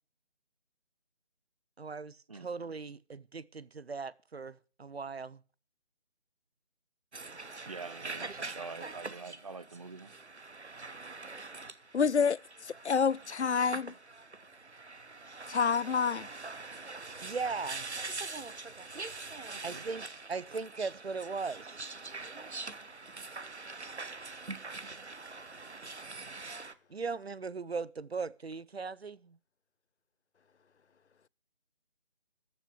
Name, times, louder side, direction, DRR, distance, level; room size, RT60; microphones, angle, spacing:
voice 1, 1.8-5.4 17.2-17.8 19.6-21.7 26.9-29.4, right 4 dB, 70° right, 0.8 m, -38 dB
sound 1, 7.1-26.7, right 3 dB, 90° right, 1.1 m, -44 dB
voice 2, 7.7-10.1 19.5-19.8, right 4 dB, 35° right, 0.9 m, -45 dB
voice 3, 11.9-13.9 15.5-16.3, left 6 dB, 85° left, 0.5 m, -28 dB
14.0 x 6.4 x 7.8 m
figure-of-eight pair, 155°, 33 cm